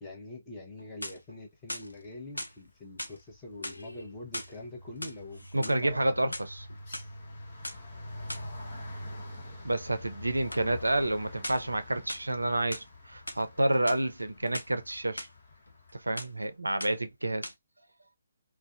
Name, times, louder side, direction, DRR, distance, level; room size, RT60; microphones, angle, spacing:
voice 1, 0.0-6.3, left 2 dB, 15° left, 0.9 m, -44 dB
sound 1, 0.7-1.4 1.7-2.6 3.0-3.2 3.6-4.6 4.9-5.8 6.2-7.1 7.6-7.8 8.3-8.5 10.5-10.7 11.4-11.7 12.1-12.9 13.3-13.4 13.7-14.7 15.2-15.3 15.7-16.4 16.8-17.1 17.4-17.5, left 1 dB, 85° left, 0.5 m, -40 dB
sound 2, 2.2-2.6 2.9-16.0, left 1 dB, 40° left, 1.2 m, -46 dB
voice 2, 5.5-6.6 9.6-15.3 15.9-17.5, right 1 dB, 80° right, 0.4 m, -29 dB
2.4 x 2.2 x 2.5 m
figure-of-eight pair, 135°, 0 cm